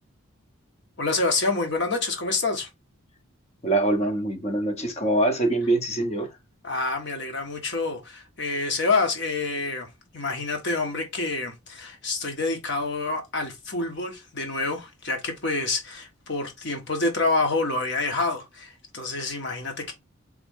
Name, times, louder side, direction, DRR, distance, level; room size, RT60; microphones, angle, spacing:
voice 1, 1.0-2.7 6.6-19.9, left 3 dB, 55° left, 1.4 m, -27 dB
voice 2, 3.6-6.3, right 1 dB, 30° left, 0.9 m, -24 dB
4.1 x 3.5 x 3.6 m
head